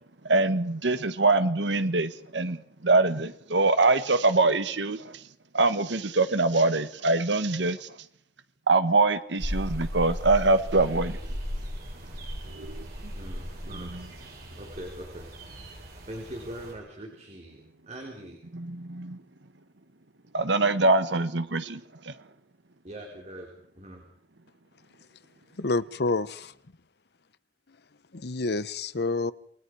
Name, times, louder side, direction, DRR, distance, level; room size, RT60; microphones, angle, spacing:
voice 1, 0.2-5.2 5.5-7.9 8.7-11.2 12.5-12.9 13.8-14.0 18.5-19.2 20.3-21.8 22.1-22.2, right 3 dB, 80° right, 11 dB, 1.5 m, -24 dB
sound 1, 9.4-16.7, equal, 55° right, 7.3 m, -36 dB
voice 2, 13.1-13.9 14.5-15.8 16.1-18.4 22.8-24.0, right 1 dB, 40° right, 1 dB, 4.0 m, -42 dB
voice 3, 25.6-26.5 28.1-29.3, left 3 dB, 65° left, 15 dB, 0.8 m, -28 dB
28.0 x 21.5 x 4.8 m, 0.62 s
head